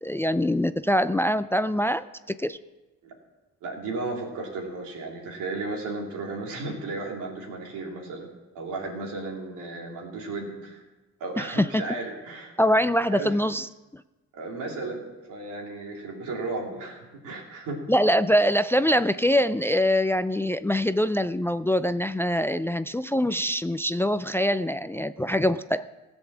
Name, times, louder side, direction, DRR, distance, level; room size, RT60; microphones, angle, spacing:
voice 1, 0.0-2.6 11.4-11.8 12.6-14.0 17.9-25.8, equal, 10° left, 13 dB, 0.4 m, -24 dB
voice 2, 3.6-8.3 8.5-10.8 11.2-12.5 13.1-13.3 14.3-17.9, right 3 dB, 85° right, 0 dB, 3.0 m, -34 dB
16.5 x 7.0 x 7.3 m, 1.1 s
cardioid pair, 90°, 30 cm